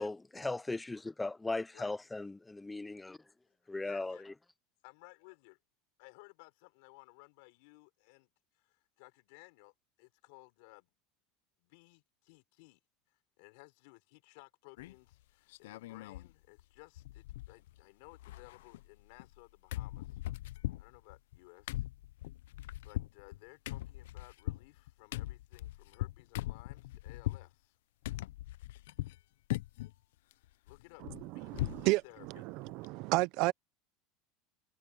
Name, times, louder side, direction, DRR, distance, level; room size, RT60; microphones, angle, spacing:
voice 1, 0.0-3.2 3.7-4.3, left 2 dB, 10° left, 0.3 m, -38 dB
voice 2, 3.6-4.3 4.8-5.6 6.0-8.3 8.5-10.9 11.6-12.8 13.1-20.2 20.8-21.8 22.8-27.8 30.6-32.4, left 29 dB, 70° left, 5.1 m, -58 dB
sound 1, 14.8-15.1 15.5-16.3 16.6-16.7 17.0-17.8 18.1-19.4 19.7-27.5 28.0-29.2 29.5-29.9 30.3-31.9 32.2-32.3 32.7-32.9, left 16 dB, 90° left, 0.3 m, -40 dB
voice 3, 31.4-32.0 32.3-33.5, right 22 dB, 55° right, 0.4 m, -31 dB
supercardioid pair, 150°, 0 cm